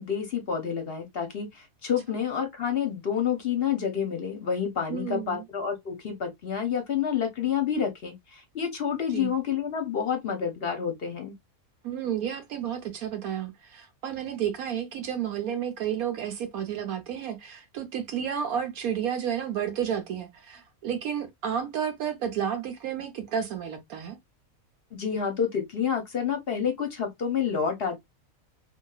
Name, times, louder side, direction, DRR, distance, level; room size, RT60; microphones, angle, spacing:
voice 1, 0.0-11.3 24.9-28.0, left 7 dB, 55° left, 0.7 m, -29 dB
voice 2, 4.9-5.5 9.1-9.3 11.8-24.2, right 8 dB, 90° right, 1.3 m, -31 dB
3.0 x 2.9 x 2.2 m
omnidirectional pair, 1.5 m